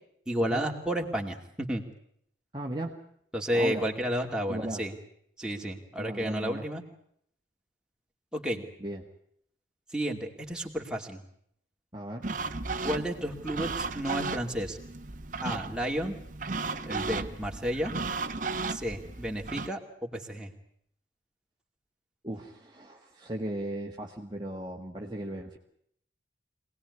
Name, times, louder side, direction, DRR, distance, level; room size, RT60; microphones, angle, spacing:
voice 1, 0.3-1.8 3.3-4.9 5.4-6.8 8.3-8.6 9.9-11.2 12.8-14.8 15.4-16.2 16.8-17.9 18.7-20.5, equal, 5° right, 1 dB, 2.5 m, -32 dB
voice 2, 2.5-3.0 3.5-3.9 4.5-4.8 6.0-6.7 8.8-9.0 11.9-12.3 22.2-25.6, right 1 dB, 20° right, 0 dB, 1.6 m, -36 dB
sound 1, 12.2-19.7, right 3 dB, 40° right, 1.1 m, -35 dB
25.5 x 19.0 x 9.6 m, 0.71 s
head